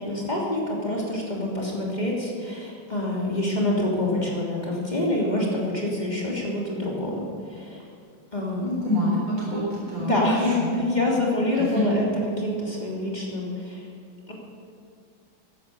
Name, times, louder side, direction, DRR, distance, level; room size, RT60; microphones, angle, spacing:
voice 1, 0.0-7.2 7.5-7.9 8.3-8.7 10.0-13.9 14.3-14.4, left 1 dB, 20° left, -4 dB, 3.1 m, -26 dB
voice 2, 8.6-10.8 11.5-11.9, left 1 dB, 75° right, -5 dB, 4.9 m, -27 dB
15.5 x 11.0 x 6.8 m, 2.3 s
omnidirectional pair, 2.3 m